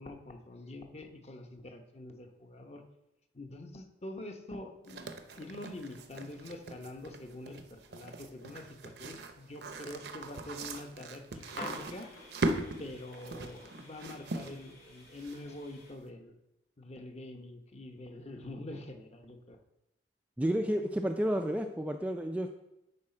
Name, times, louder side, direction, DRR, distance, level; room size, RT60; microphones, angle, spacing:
voice 1, 0.0-2.8 3.3-5.1 5.4-12.1 12.8-16.3 16.8-19.6, left 1 dB, 35° left, 4 dB, 0.9 m, -45 dB
sound 1, 4.9-15.7, right 2 dB, 65° right, 0.7 m, -40 dB
sound 2, 11.2-15.9, left 2 dB, 60° left, 2.6 m, -50 dB
voice 2, 20.4-22.5, equal, 10° right, 5 dB, 0.3 m, -31 dB
9.6 x 4.8 x 4.3 m, 0.89 s
head